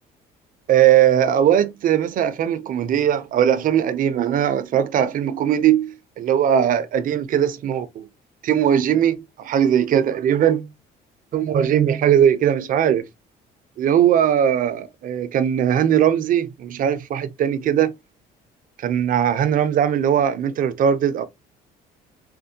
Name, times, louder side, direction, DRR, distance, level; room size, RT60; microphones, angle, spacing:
voice 1, 0.7-8.1 8.4-10.7 11.3-13.1 13.8-17.9 18.8-21.3, right 9 dB, 55° right, 0.5 m, -19 dB
4.2 x 2.2 x 2.7 m
cardioid pair, 110°, 17 cm